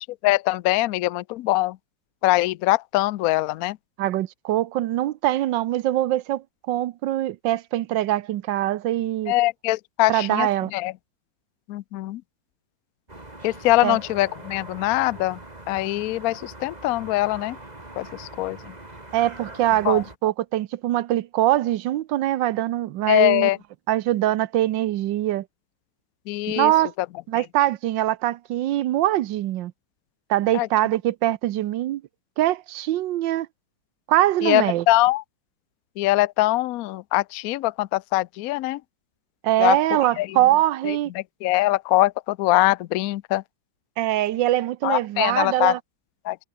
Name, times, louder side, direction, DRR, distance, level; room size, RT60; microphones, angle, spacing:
voice 1, 0.0-1.8 2.2-3.8 9.3-10.9 11.7-12.2 13.4-15.4 15.7-17.6 18.0-18.7 19.8-20.0 23.1-23.6 26.3-26.7 27.0-27.1 27.3-27.4 30.5-30.7 34.4-35.2 36.0-38.8 39.6-39.8 40.2-40.4 40.8-43.4 44.8-45.7 46.2-46.4, left 18 dB, 80° left, 0.8 m, -23 dB
voice 2, 4.0-9.3 10.1-10.7 13.8-14.0 19.1-23.5 23.9-25.4 26.5-26.9 27.3-29.7 30.3-32.0 32.4-33.5 34.1-34.8 39.4-41.1 44.0-45.8, right 14 dB, 75° right, 1.4 m, -23 dB
sound 1, 13.1-20.2, right 2 dB, 20° right, 3.5 m, -42 dB
omnidirectional pair, 2.1 m